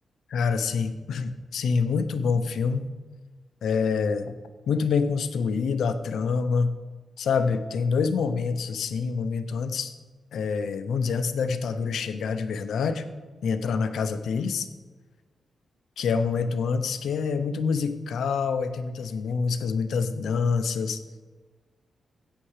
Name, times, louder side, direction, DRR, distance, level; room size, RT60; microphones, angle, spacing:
voice 1, 0.3-2.9 3.6-4.4 4.7-6.7 7.2-10.0 10.3-13.1 13.4-14.7 16.0-21.0, left 5 dB, 90° left, 9 dB, 0.6 m, -26 dB
14.0 x 8.9 x 3.3 m, 1.4 s
wide cardioid pair, 135°, 0 cm